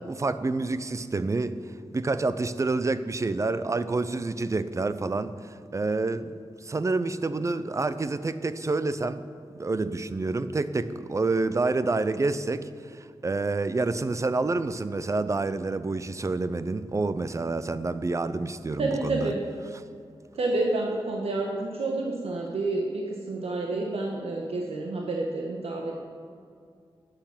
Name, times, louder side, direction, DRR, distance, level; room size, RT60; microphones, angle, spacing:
voice 1, 0.0-1.6 1.9-6.3 6.6-9.2 9.6-19.3, right 3 dB, 30° right, 13 dB, 0.5 m, -28 dB
voice 2, 18.8-19.4 20.3-25.9, right 2 dB, 85° right, 0 dB, 1.3 m, -29 dB
11.5 x 9.1 x 7.4 m, 2.2 s
wide cardioid pair, 120°, 10 cm